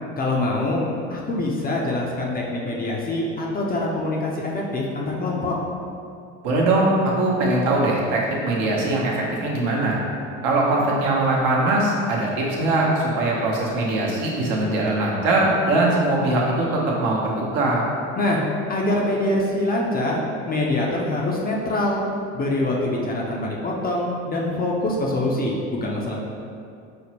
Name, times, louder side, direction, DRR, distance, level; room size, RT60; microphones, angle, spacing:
voice 1, 0.2-0.8 1.1-5.6 18.2-18.4 18.7-20.2 20.5-22.0 22.3-26.2, left 1 dB, 25° left, -3 dB, 0.5 m, -24 dB
voice 2, 6.4-10.0 10.4-17.9, right 2 dB, 60° right, -3 dB, 1.0 m, -21 dB
5.1 x 2.0 x 2.9 m, 2.4 s
supercardioid pair, 90°, 37 cm